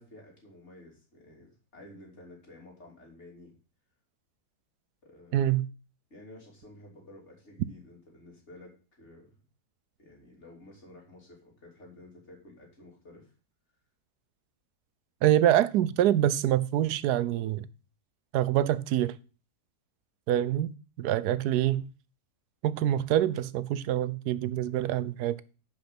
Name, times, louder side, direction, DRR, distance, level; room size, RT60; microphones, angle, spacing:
voice 1, 0.0-3.5 5.0-5.6 6.1-9.4 10.0-13.3, left 1 dB, 45° left, 3.5 m, -52 dB
voice 2, 5.3-5.7 15.2-17.7 18.3-19.2 20.3-21.9 22.6-25.4, right 12 dB, 85° right, 1.2 m, -25 dB
10.5 x 5.5 x 5.9 m
omnidirectional pair, 1.6 m